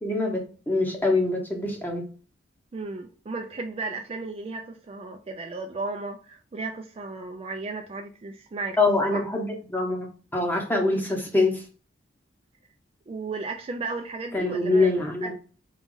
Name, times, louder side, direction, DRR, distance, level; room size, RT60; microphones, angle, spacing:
voice 1, 0.0-2.0 8.8-11.6 14.3-15.3, left 2 dB, 10° left, 1 dB, 0.9 m, -24 dB
voice 2, 2.7-8.8 9.1-9.2 10.9-11.0 13.1-14.9 15.2-15.3, right 3 dB, 30° right, 4 dB, 0.3 m, -34 dB
4.0 x 2.4 x 3.8 m, 0.38 s
head